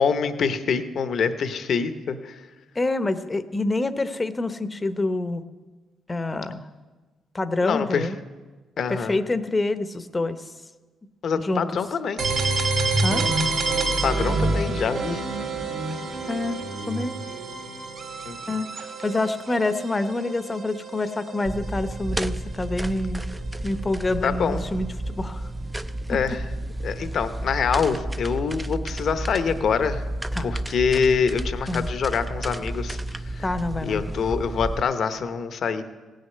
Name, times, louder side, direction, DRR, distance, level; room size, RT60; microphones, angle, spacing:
voice 1, 0.0-2.4 7.6-8.1 8.8-9.2 11.2-12.2 14.0-15.2 18.3-18.6 24.2-24.7 26.1-26.4 26.8-30.1 30.4-33.5 33.8-35.8, left 6 dB, 60° left, 10 dB, 0.9 m, -25 dB
voice 2, 2.7-5.4 6.1-6.7 7.3-8.2 8.9-10.5 11.4-11.6 13.0-13.3 16.3-16.6 16.9-17.2 18.5-23.3 23.6-25.5 26.1-26.2 30.3-30.6 31.7-31.9 33.4-34.0, left 2 dB, 20° left, 11 dB, 0.8 m, -27 dB
sound 1, 12.2-21.9, right 3 dB, 55° right, 2.1 m, -27 dB
sound 2, 21.5-34.8, right 1 dB, 10° right, 0.5 m, -31 dB
16.5 x 6.5 x 9.5 m, 1.3 s
cardioid pair, 90°, 0 cm